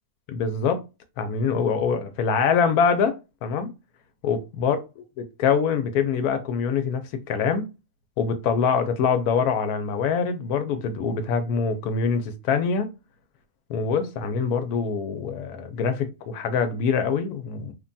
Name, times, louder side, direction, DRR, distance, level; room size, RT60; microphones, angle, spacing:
voice 1, 0.3-0.8 1.2-3.7 4.2-4.8 5.4-7.0 7.3-7.7 8.2-12.9 13.7-17.7, left 6 dB, 90° left, 1.1 m, -24 dB
3.1 x 2.2 x 2.5 m
omnidirectional pair, 1.5 m